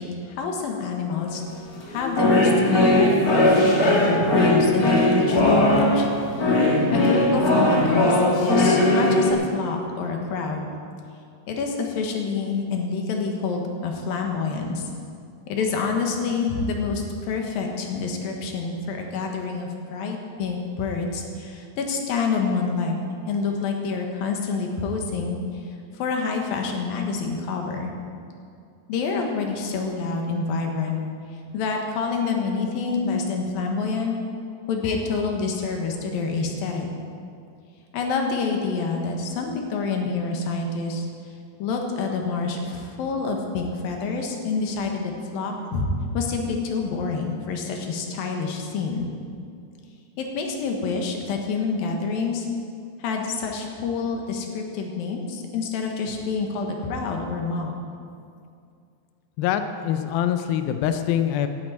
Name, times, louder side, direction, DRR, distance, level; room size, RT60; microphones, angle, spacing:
voice 1, 0.0-1.4 1.9-6.1 6.4-10.7 11.5-14.9 15.5-25.4 25.9-27.9 28.9-31.0 31.5-34.2 34.7-36.9 37.9-41.1 41.6-49.1 50.2-52.5 53.0-57.8, left 4 dB, 65° left, 2 dB, 2.9 m, -27 dB
sound 1, 1.1-1.4 1.8-9.3, left 1 dB, 40° left, 1.3 m, -19 dB
voice 2, 59.4-61.5, left 10 dB, 85° left, 8 dB, 2.1 m, -24 dB
12.0 x 8.6 x 9.2 m, 2.4 s
omnidirectional pair, 5.0 m